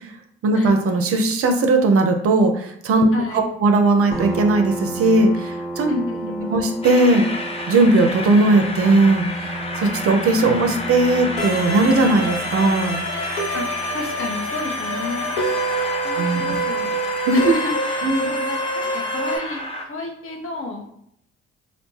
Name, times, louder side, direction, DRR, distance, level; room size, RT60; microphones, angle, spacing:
voice 1, 0.4-3.1 3.3-5.9 6.5-7.2 7.7-13.0 16.2-16.6 17.3-17.5 18.0-18.3, right 2 dB, 50° right, 5 dB, 0.5 m, -18 dB
voice 2, 3.1-3.5 5.9-6.6 13.5-13.7 13.9-15.3 16.0-17.0 17.3-19.6 19.9-21.0, left 3 dB, 45° left, 1 dB, 0.8 m, -31 dB
sound 1, 4.1-17.4, right 2 dB, ahead, 0.9 m, -33 dB
Train, 6.8-19.9, left 2 dB, 20° left, 0.5 m, -30 dB
sound 2, 11.4-19.4, right 1 dB, 85° left, 0.5 m, -26 dB
2.5 x 2.1 x 3.1 m, 0.70 s
hypercardioid pair, 55°, 30 cm